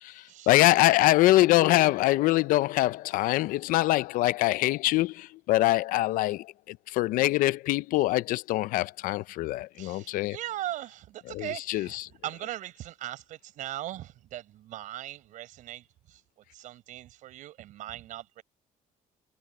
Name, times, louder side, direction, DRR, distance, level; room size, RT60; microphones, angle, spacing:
voice 1, 0.0-10.4 11.3-12.1, left 17 dB, 75° left, 0.5 m, -24 dB
voice 2, 9.8-16.2 16.5-18.4, right 13 dB, 65° right, 4.9 m, -39 dB
cardioid pair, 170°, 14 cm